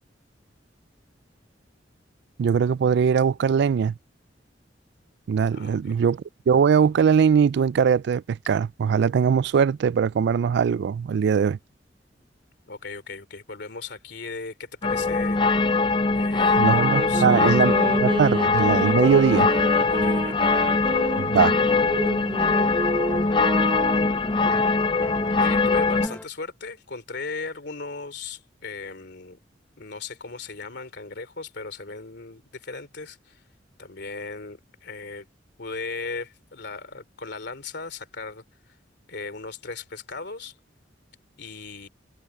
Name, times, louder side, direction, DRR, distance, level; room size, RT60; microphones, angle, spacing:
voice 1, 2.4-3.9 5.3-11.6 16.6-19.5 21.2-21.6, right 6 dB, 65° right, 0.3 m, -21 dB
voice 2, 5.5-6.0 12.7-15.4 16.1-16.7 17.1-17.5 19.9-20.4 25.3-29.4 29.8-33.4 33.8-35.3 35.6-38.4 39.1-40.5 41.4-41.9, left 4 dB, 65° left, 3.1 m, -37 dB
sound 1, 14.8-26.1, left 3 dB, 25° left, 0.6 m, -22 dB
sound 2, 16.6-24.2, right 2 dB, 25° right, 0.7 m, -31 dB
sound 3, 19.0-26.2, left 1 dB, 10° left, 1.2 m, -39 dB
head